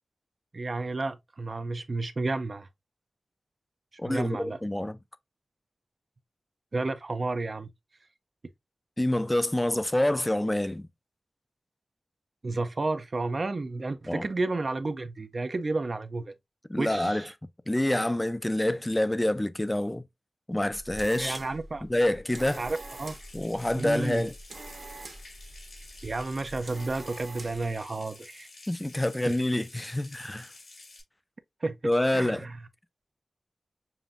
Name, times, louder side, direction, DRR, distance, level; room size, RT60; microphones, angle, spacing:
voice 1, 0.5-2.7 4.0-4.6 6.7-7.7 12.4-16.3 16.8-17.3 21.2-21.8 22.6-23.2 23.8-24.3 26.0-28.5 29.3-29.4 31.6-32.6, right 3 dB, 50° right, 0.4 m, -31 dB
voice 2, 4.0-5.0 9.0-10.9 14.1-14.2 16.7-17.3 17.7-20.0 20.5-21.4 21.9-22.6 23.3-24.3 28.7-30.5 31.8-32.5, left 1 dB, 15° left, 0.4 m, -27 dB
sound 1, 20.7-27.7, right 2 dB, 65° right, 1.1 m, -45 dB
Water tap faucet / Sink (filling or washing) / Trickle dribble, 22.5-31.0, left 2 dB, 85° left, 2.7 m, -50 dB
7.0 x 2.6 x 2.4 m
wide cardioid pair, 95°, 0 cm